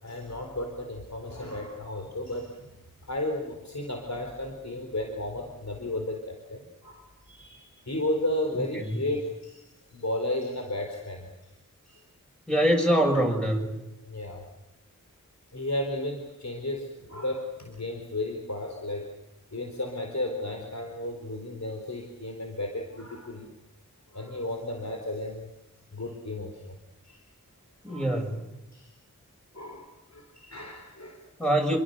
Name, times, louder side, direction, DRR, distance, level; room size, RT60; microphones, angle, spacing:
voice 1, 0.0-2.7 3.1-11.5 11.9-12.0 14.0-14.4 15.5-19.1 19.5-23.5 24.1-25.5 25.9-26.8 27.0-27.2 27.9-28.1 28.7-28.9 29.5-31.3, left 1 dB, 60° left, 2 dB, 4.2 m, -34 dB
voice 2, 12.5-13.7 27.8-28.4 31.4-31.8, equal, 5° left, 0 dB, 7.0 m, -24 dB
28.0 x 23.5 x 6.7 m, 0.97 s
wide cardioid pair, 50°, 32 cm